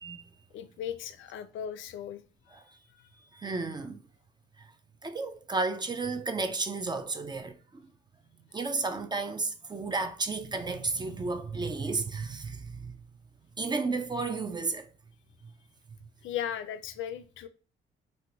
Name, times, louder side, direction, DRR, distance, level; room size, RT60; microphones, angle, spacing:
voice 1, 0.5-2.2 16.2-17.5, left 9 dB, 80° left, 0.4 m, -37 dB
voice 2, 3.3-4.0 4.6-4.7 5.0-7.6 8.5-13.0 13.6-14.9, right 3 dB, 20° right, 0.4 m, -32 dB
2.8 x 2.2 x 3.8 m
cardioid pair, 90°, 20 cm